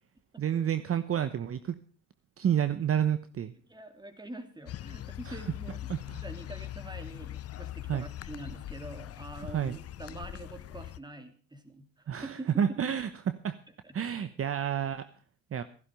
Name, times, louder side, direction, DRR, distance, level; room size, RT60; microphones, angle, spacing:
voice 1, 0.4-1.7 2.4-3.5 5.3-5.4 5.9-6.2 7.9-8.1 9.5-9.8 12.1-13.1 13.4-13.5 13.9-15.1 15.5-15.6, right 9 dB, 50° right, 12 dB, 0.9 m, -29 dB
voice 2, 3.7-12.5 13.8-13.9, right 1 dB, 15° right, 8 dB, 2.8 m, -45 dB
sound 1, 4.7-11.0, left 13 dB, 50° left, 0.6 m, -41 dB
15.0 x 11.5 x 5.1 m, 0.41 s
cardioid pair, 90°, 30 cm